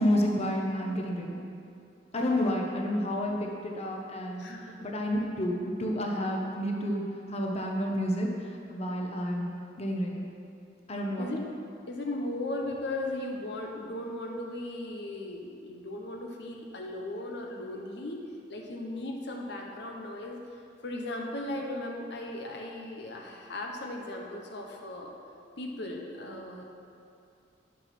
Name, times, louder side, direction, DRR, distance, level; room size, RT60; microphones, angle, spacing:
voice 1, 0.0-1.4 2.1-4.4 4.8-7.0 7.3-8.3 8.7-9.5 9.8-10.3 10.9-11.3, equal, 35° left, 0 dB, 1.0 m, -30 dB
voice 2, 4.4-4.8 11.2-11.4 11.9-18.2 18.5-20.4 20.8-25.1 25.6-26.6, left 1 dB, 70° left, 1 dB, 1.0 m, -37 dB
9.7 x 6.2 x 6.0 m, 2.5 s
head